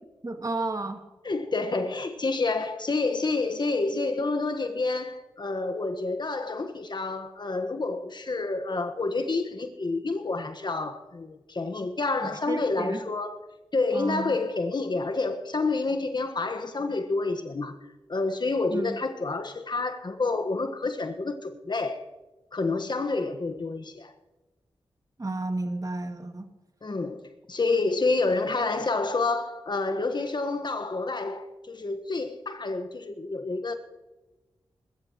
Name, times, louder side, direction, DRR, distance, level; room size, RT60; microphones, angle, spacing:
voice 1, 0.2-1.0 12.2-13.0 13.9-14.4 18.7-19.0 25.2-26.5, right 2 dB, 35° right, 2.2 m, -32 dB
voice 2, 1.2-13.4 13.7-17.8 18.1-22.0 22.5-24.1 26.8-33.8, left 3 dB, 50° left, 1.4 m, -28 dB
22.5 x 13.5 x 3.1 m
cardioid pair, 45°, 10 cm